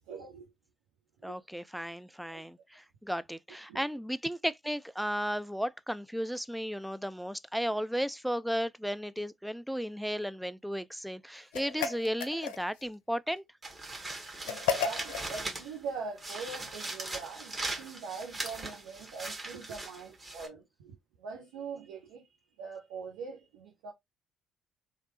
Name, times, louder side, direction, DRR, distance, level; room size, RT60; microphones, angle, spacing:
voice 1, 0.1-0.5 1.2-1.4 2.3-2.5 3.7-3.8 14.4-22.3 22.6-23.9, right 5 dB, 75° right, 0.9 m, -43 dB
voice 2, 1.2-13.4, equal, ahead, 0.3 m, -34 dB
sound 1, 11.5-12.9 14.5-15.3, left 7 dB, 75° left, 0.4 m, -33 dB
sound 2, 13.6-15.8 16.2-20.5, right 2 dB, 30° right, 1.4 m, -40 dB
3.2 x 2.4 x 2.9 m
figure-of-eight pair, 50°, 0 cm